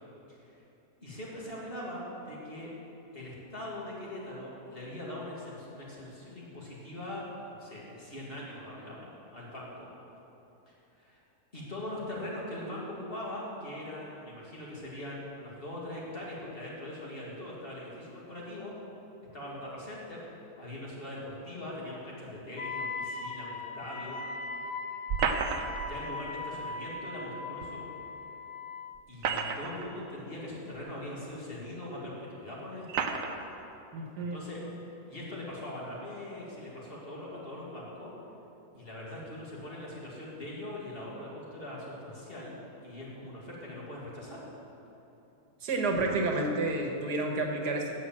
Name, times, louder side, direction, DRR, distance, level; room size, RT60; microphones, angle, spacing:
voice 1, 0.3-0.6 1.0-2.7 3.1-9.9 10.7-11.2 11.5-18.7 19.3-20.2 20.6-24.2 25.2-25.5 25.9-27.8 29.1-33.2 34.2-34.6 35.0-38.1 38.7-44.4, left 1 dB, 35° left, -5 dB, 2.5 m, -41 dB
Wind instrument woodwind instrument, 22.6-29.0, left 3 dB, 70° left, 0.4 m, -39 dB
sound 1, 25.1-25.9 27.6-27.7 29.0-29.9 30.8-30.9 31.8-31.9 32.9-33.4, right 6 dB, 65° right, 1.1 m, -31 dB
voice 2, 33.9-34.4 45.6-48.0, right 2 dB, 85° right, 2 dB, 1.8 m, -30 dB
10.0 x 7.6 x 7.6 m, 2.9 s
omnidirectional pair, 1.7 m